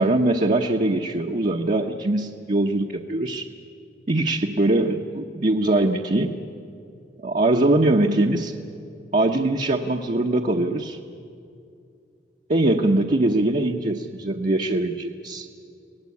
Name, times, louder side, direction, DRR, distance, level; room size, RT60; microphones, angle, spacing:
voice 1, 0.0-3.5 4.1-6.4 7.2-8.5 9.1-11.0 12.5-15.5, right 2 dB, 45° right, 1 dB, 1.0 m, -22 dB
25.0 x 18.5 x 8.5 m, 2.5 s
head